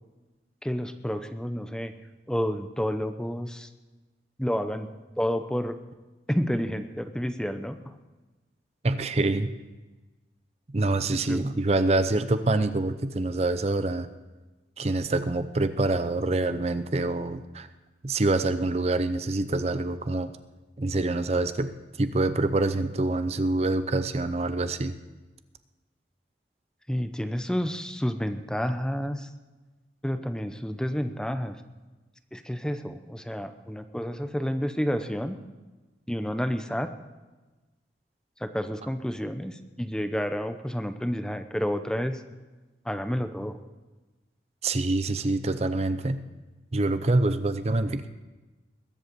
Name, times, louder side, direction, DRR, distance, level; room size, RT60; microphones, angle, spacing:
voice 1, 0.6-1.9 2.3-3.7 4.4-4.9 5.2-5.8 6.3-7.8 11.1-11.4 26.9-29.3 30.0-31.6 32.3-35.4 36.1-36.9 38.4-42.2 42.8-43.6, equal, 5° left, 9 dB, 0.6 m, -30 dB
voice 2, 8.8-9.5 10.7-14.1 14.8-17.7 18.0-20.3 20.8-21.7 22.0-24.9 44.6-46.2 46.7-48.1, right 2 dB, 35° right, 11 dB, 0.6 m, -26 dB
21.5 x 8.0 x 6.8 m, 1.2 s
head